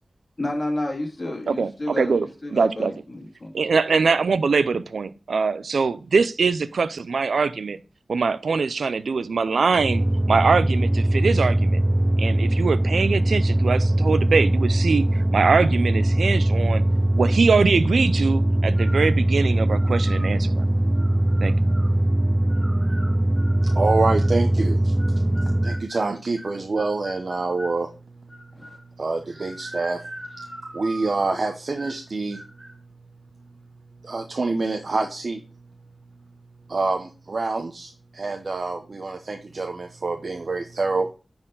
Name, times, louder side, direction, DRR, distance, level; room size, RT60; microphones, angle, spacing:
voice 1, 0.4-3.7 28.5-28.8, left 1 dB, 35° left, 2.3 m, -31 dB
voice 2, 2.5-2.9 3.5-7.8 8.1-11.8 12.2-16.8 17.2-20.6 21.4-21.5, right 4 dB, 85° right, 0.4 m, -22 dB
sound 1, 9.8-25.9, right 1 dB, 15° right, 0.4 m, -21 dB
sound 2, 18.7-19.2 19.7-20.3 20.9-21.9 22.5-24.4 25.0-27.8 28.3-28.9 29.3-31.3 31.8-32.1 32.3-32.8, equal, 30° right, 3.4 m, -41 dB
voice 3, 23.6-24.9 25.6-27.9 29.0-30.0 30.7-32.4 34.0-35.4 36.7-41.1, right 3 dB, 55° right, 0.8 m, -26 dB
9.9 x 4.4 x 3.8 m
wide cardioid pair, 75°, 0 cm